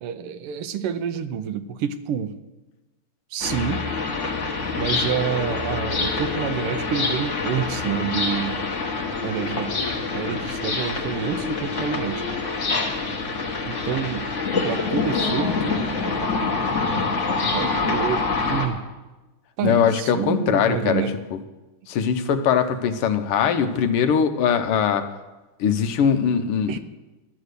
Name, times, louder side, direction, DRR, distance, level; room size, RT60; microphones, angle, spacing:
voice 1, 0.0-2.3 3.3-3.9 4.7-8.6 9.2-9.8 10.1-12.2 13.6-14.3 14.6-15.8 17.5-18.8 19.6-21.2 26.7-26.8, right 8 dB, 85° right, 11 dB, 1.7 m, -28 dB
sound 1, 3.4-18.7, left 4 dB, 40° left, 1.5 m, -26 dB
voice 2, 19.6-21.0 21.3-21.4 21.9-25.0 25.6-26.8, left 7 dB, 85° left, 9 dB, 1.8 m, -21 dB
12.5 x 9.6 x 6.6 m, 1.1 s
omnidirectional pair, 2.4 m